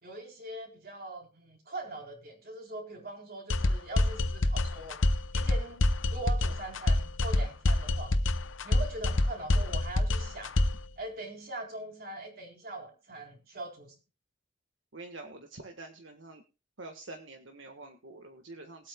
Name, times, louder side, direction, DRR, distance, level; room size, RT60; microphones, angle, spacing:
voice 1, 0.0-8.2 8.6-10.5 11.0-13.9, right 2 dB, 50° right, 2 dB, 4.0 m, -42 dB
sound 1, 3.5-10.9, left 2 dB, 85° left, 0.8 m, -27 dB
voice 2, 14.9-16.4 16.8-18.9, right 2 dB, 75° right, 3 dB, 1.5 m, -46 dB
21.5 x 8.5 x 2.3 m, 0.32 s
head